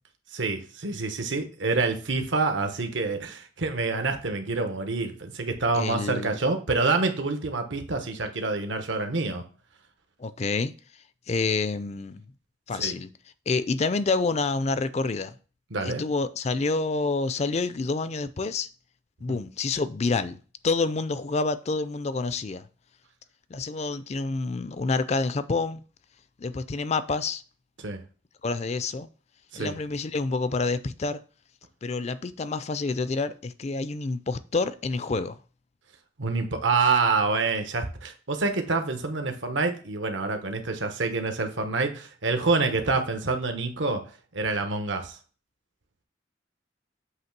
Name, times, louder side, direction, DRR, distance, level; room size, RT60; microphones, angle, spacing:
voice 1, 0.3-9.4 12.7-12.9 15.7-16.0 19.3-19.4 27.8-28.0 29.5-29.7 36.2-44.0 44.3-45.2, right 3 dB, 80° right, 1.1 m, -27 dB
voice 2, 5.8-6.4 10.2-10.7 11.3-12.2 12.7-13.1 13.5-15.3 15.8-18.7 19.2-22.6 23.5-25.8 26.4-27.4 28.4-29.1 29.5-31.2 31.8-35.4, left 3 dB, 35° left, 0.4 m, -28 dB
7.9 x 3.2 x 5.9 m
head